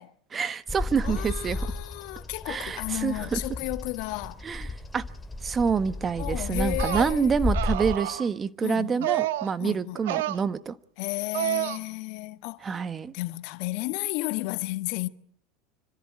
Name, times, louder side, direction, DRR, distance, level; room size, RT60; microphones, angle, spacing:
voice 1, 0.3-1.6 2.5-3.4 4.4-4.7 4.9-5.0 5.4-10.8 12.6-13.1, right 6 dB, 25° right, 1.2 m, -27 dB
Bird vocalization bird call bird song, 0.7-7.9, left 2 dB, 10° left, 2.8 m, -33 dB
voice 2, 1.0-4.4 6.2-7.5 8.6-9.1 9.6-10.0 11.0-12.7 13.1-15.1, left 21 dB, 65° left, 1.2 m, -33 dB
sound 1, 6.7-7.1 7.5-8.3 9.0-9.5 10.0-10.4 11.3-11.8, right 13 dB, 75° right, 1.2 m, -29 dB
26.0 x 14.0 x 9.5 m
hypercardioid pair, 90°, 0 cm